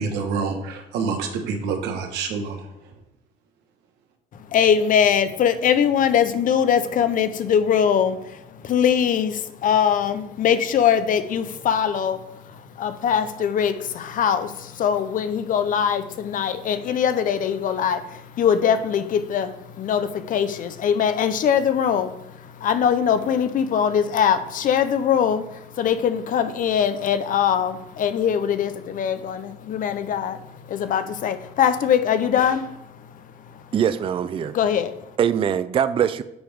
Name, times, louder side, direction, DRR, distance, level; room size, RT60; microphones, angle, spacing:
voice 1, 0.0-2.9, right 5 dB, 90° right, 4 dB, 1.2 m, -27 dB
voice 2, 4.5-33.6 34.5-35.0, left 8 dB, 55° left, 11 dB, 0.7 m, -22 dB
voice 3, 33.7-34.6 35.2-36.2, right 8 dB, 30° right, 13 dB, 0.4 m, -22 dB
8.8 x 3.5 x 5.0 m, 0.84 s
cardioid pair, 110°, 17 cm